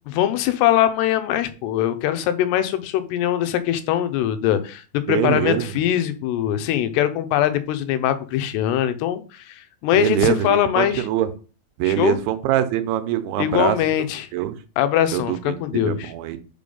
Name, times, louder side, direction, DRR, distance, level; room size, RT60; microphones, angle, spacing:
voice 1, 0.1-11.0 11.9-12.2 13.4-14.3 14.8-16.1, left 11 dB, 90° left, 11 dB, 2.9 m, -22 dB
voice 2, 5.1-5.6 9.9-11.3 11.8-13.8 14.3-14.6 15.1-16.4, right 12 dB, 80° right, 11 dB, 2.6 m, -23 dB
5.8 x 5.1 x 5.4 m, 0.35 s
omnidirectional pair, 4.7 m